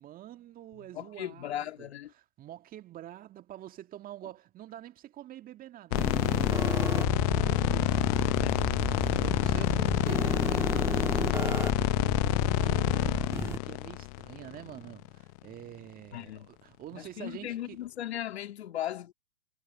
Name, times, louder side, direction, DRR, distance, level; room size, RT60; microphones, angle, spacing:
voice 1, 0.0-1.9 2.4-6.6 7.2-8.0 8.6-12.2 12.5-17.8, right 12 dB, 25° right, 2.0 m, -46 dB
voice 2, 0.9-2.1 8.4-8.7 16.1-16.5 16.9-19.1, left 12 dB, 60° left, 2.3 m, -37 dB
sound 1, 5.9-15.1, left 26 dB, 30° left, 0.7 m, -28 dB
sound 2, 5.9-13.6, right 3 dB, 5° right, 1.6 m, -34 dB
figure-of-eight pair, 115°, 36 cm